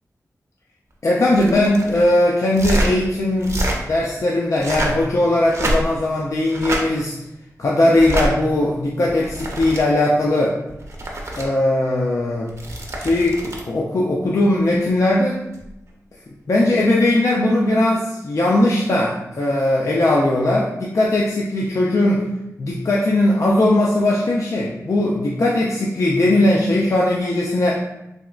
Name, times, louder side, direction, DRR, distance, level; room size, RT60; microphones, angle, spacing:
voice 1, 1.0-3.5 3.8-7.2 7.6-10.6 11.3-12.5 13.0-15.4 16.5-22.3 22.6-27.8, left 1 dB, 55° left, -3 dB, 0.4 m, -19 dB
sound 1, 1.3-2.0 2.5-2.9 3.4-3.8 4.5-5.0 5.5-6.1 6.5-6.8 7.9-8.3 9.1-9.8 10.7-11.4 12.5-13.7 15.5-15.7, right 1 dB, 50° right, 0.6 m, -25 dB
3.6 x 3.0 x 2.3 m, 0.90 s
wide cardioid pair, 95°, 6 cm